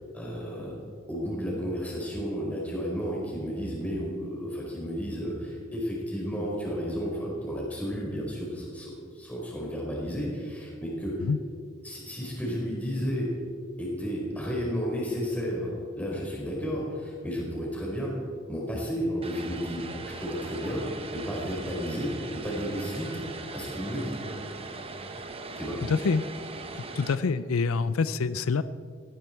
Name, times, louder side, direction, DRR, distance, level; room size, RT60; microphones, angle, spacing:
voice 1, 0.1-0.7 1.1-11.3 11.8-13.3 13.8-18.1 18.5-19.9 20.2-20.9 21.1-23.2 23.5-24.2 25.5-25.8, equal, 5° left, -4 dB, 5.0 m, -32 dB
Vehicle, 19.2-27.2, right 3 dB, 30° right, 1.1 m, -40 dB
voice 2, 25.9-26.2 26.9-28.6, left 4 dB, 85° left, 14 dB, 0.5 m, -26 dB
17.5 x 16.0 x 4.6 m, 2.2 s
head